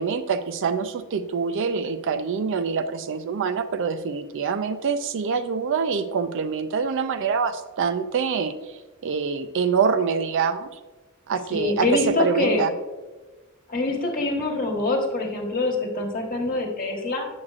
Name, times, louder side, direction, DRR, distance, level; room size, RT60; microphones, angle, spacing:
voice 1, 0.0-8.8 9.0-10.7 11.3-12.7, right 5 dB, 60° right, 10 dB, 0.4 m, -25 dB
voice 2, 11.5-12.6 13.7-17.3, left 2 dB, 40° left, 0 dB, 1.3 m, -25 dB
8.5 x 6.3 x 2.4 m, 1.2 s
head